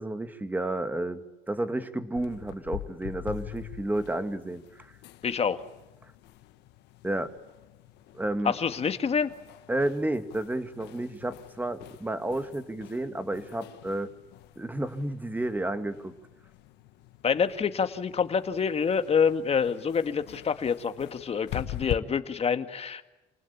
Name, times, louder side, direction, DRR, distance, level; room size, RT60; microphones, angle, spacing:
voice 1, 0.0-4.9 7.0-7.3 8.1-8.5 9.7-14.1 14.6-16.1, right 1 dB, 10° right, 9 dB, 2.2 m, -31 dB
sound 1, 2.2-22.0, left 15 dB, 85° left, 1.4 m, -44 dB
voice 2, 5.2-5.6 8.4-9.3 17.2-23.1, left 6 dB, 35° left, 9 dB, 1.9 m, -27 dB
28.5 x 19.5 x 8.7 m, 1.1 s
cardioid pair, 110°, 17 cm